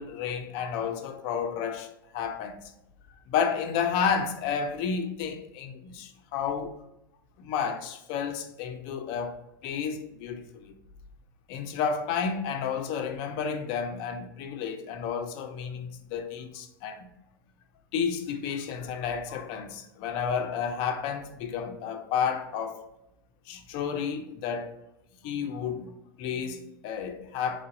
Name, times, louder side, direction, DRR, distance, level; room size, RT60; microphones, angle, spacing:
voice 1, 0.0-2.7 3.3-6.8 7.4-10.7 11.5-17.1 17.9-22.8 23.5-24.7 25.2-27.6, left 7 dB, 45° left, 0.5 m, -31 dB
3.9 x 3.3 x 2.6 m
figure-of-eight pair, 95°, 13 cm